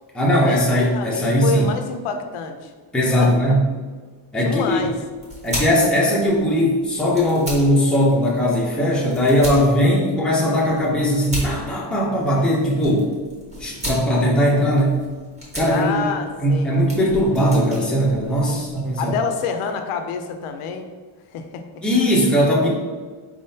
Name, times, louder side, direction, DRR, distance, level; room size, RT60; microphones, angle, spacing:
voice 1, 0.1-1.7 2.9-3.7 4.3-4.8 5.4-13.1 13.6-15.0 15.5-16.1 16.4-19.1 21.8-22.7, equal, ahead, -4 dB, 0.5 m, -19 dB
voice 2, 0.9-2.7 3.2-3.5 4.4-4.9 15.7-16.7 18.5-18.7 19.0-20.9 21.3-21.6, left 5 dB, 85° left, 6 dB, 0.6 m, -27 dB
sound 1, 4.5-19.0, equal, 15° right, 1.1 m, -36 dB
4.5 x 3.6 x 2.7 m, 1.4 s
cardioid pair, 165°, 50 cm